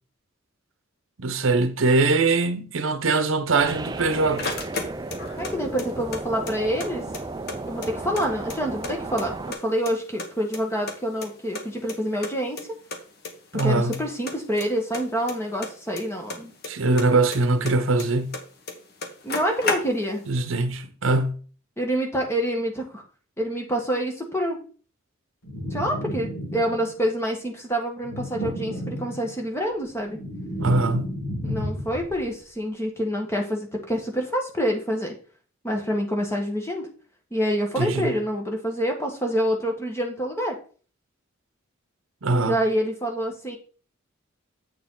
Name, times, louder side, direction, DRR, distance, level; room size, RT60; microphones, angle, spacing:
voice 1, 1.2-4.6 13.5-14.0 16.7-18.3 20.3-21.4 30.6-31.1 37.8-38.1 42.2-42.6, right 3 dB, 70° right, 0.8 m, -22 dB
sound 1, 3.6-9.5, right 3 dB, 20° right, 0.4 m, -34 dB
sound 2, 3.8-5.5 5.8-6.9 7.1-7.2 7.5-8.9 9.2-9.9 10.2-11.6 11.9-12.0 12.2-12.3 12.6-12.7 12.9-13.3 13.6-14.0 14.3-16.7 17.0-18.4 18.7-18.8 19.0-20.2, left 3 dB, 50° left, 1.3 m, -32 dB
voice 2, 5.4-7.0 7.7-12.6 13.6-16.5 19.2-20.2 21.8-23.0 23.4-24.6 25.7-30.2 31.4-35.1 35.6-36.9 37.3-40.5 42.4-43.6, equal, 10° left, 1.4 m, -27 dB
sound 3, 25.4-27.0 28.0-29.5 29.8-32.2, equal, 75° left, 5.1 m, -32 dB
7.8 x 6.8 x 3.8 m
head